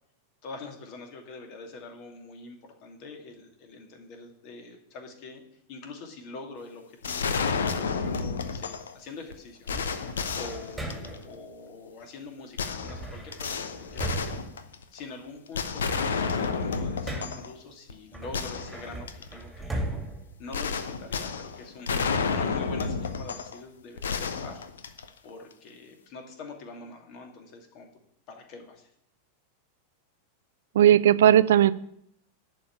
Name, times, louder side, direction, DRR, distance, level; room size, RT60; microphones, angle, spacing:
voice 1, 0.4-5.4 5.7-13.6 13.9-14.4 14.6-20.0 20.4-24.6 25.2-27.9 28.3-28.9, left 3 dB, 45° left, 3 dB, 2.6 m, -44 dB
sound 1, 7.0-8.9 9.3-9.4 9.7-11.3 12.6-15.0 15.5-17.5 17.9-18.0 18.3-19.3 20.5-23.6 24.0-25.3, left 5 dB, 65° left, 0.9 m, -31 dB
sound 2, 9.7-11.4 12.8-15.3 15.6-17.6 18.1-21.1, right 2 dB, 5° right, 2.3 m, -38 dB
voice 2, 30.8-31.7, right 11 dB, 60° right, 16 dB, 0.5 m, -17 dB
11.0 x 5.4 x 8.7 m, 0.71 s
figure-of-eight pair, 90°, 0 cm